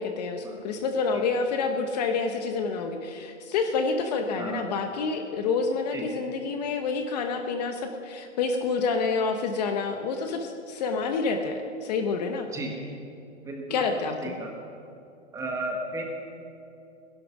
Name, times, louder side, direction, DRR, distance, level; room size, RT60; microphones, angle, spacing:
voice 1, 0.0-12.5 13.7-14.3, left 4 dB, 35° left, 6 dB, 0.9 m, -28 dB
voice 2, 13.4-13.9 14.2-14.6 15.3-16.0, right 2 dB, 10° right, 1 dB, 1.2 m, -34 dB
16.5 x 11.0 x 6.0 m, 2.6 s
hypercardioid pair, 160°, 37 cm